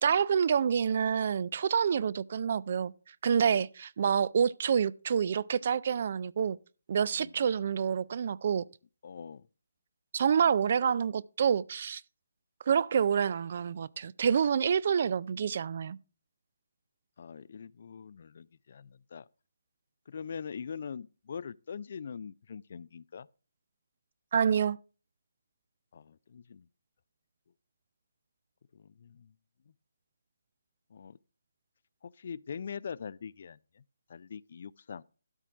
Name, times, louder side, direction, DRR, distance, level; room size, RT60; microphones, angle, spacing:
voice 1, 0.0-2.9 3.2-6.6 6.9-8.7 10.1-12.0 12.7-16.0 24.3-24.8, right 7 dB, 45° right, 0.4 m, -27 dB
voice 2, 9.0-9.5 17.2-19.3 20.1-23.3 25.9-26.7 28.7-29.3 29.7-29.8 30.9-31.2 32.0-33.8 34.1-35.0, left 6 dB, 50° left, 0.3 m, -43 dB
12.5 x 4.4 x 5.9 m
figure-of-eight pair, 145°, 0 cm